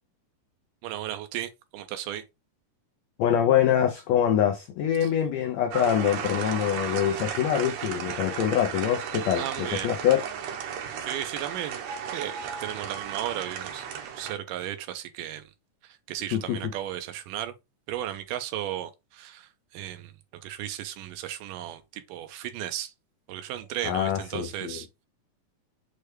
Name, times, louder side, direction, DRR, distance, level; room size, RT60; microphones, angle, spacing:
voice 1, 0.8-2.2 5.0-5.1 9.4-9.9 11.0-11.8 12.1-13.8 14.2-15.5 15.8-17.5 17.9-22.9 23.3-25.1, right 12 dB, 90° right, 2.2 m, -35 dB
voice 2, 3.2-10.2 16.3-16.6 23.8-24.8, left 9 dB, 90° left, 1.5 m, -24 dB
sound 1, 5.7-14.3, right 7 dB, 75° right, 1.6 m, -34 dB
6.5 x 2.2 x 3.1 m
omnidirectional pair, 3.8 m